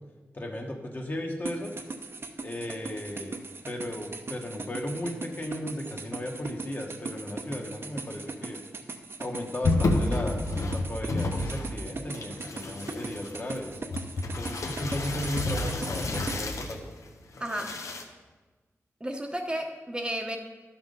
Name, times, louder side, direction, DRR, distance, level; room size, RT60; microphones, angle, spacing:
voice 1, 0.3-1.7 2.4-8.6 9.2-13.8 14.2-16.9, left 1 dB, 40° left, 1 dB, 1.4 m, -36 dB
sound 1, 1.4-16.4, right 3 dB, 50° right, 0.8 m, -39 dB
sound 2, 9.6-11.9 12.1-16.8 17.4-18.0, left 2 dB, 80° left, 0.9 m, -30 dB
voice 2, 17.4-17.8 19.0-20.4, right 1 dB, 20° right, 3 dB, 0.9 m, -32 dB
11.5 x 5.9 x 5.4 m, 1.3 s
wide cardioid pair, 75°, 5 cm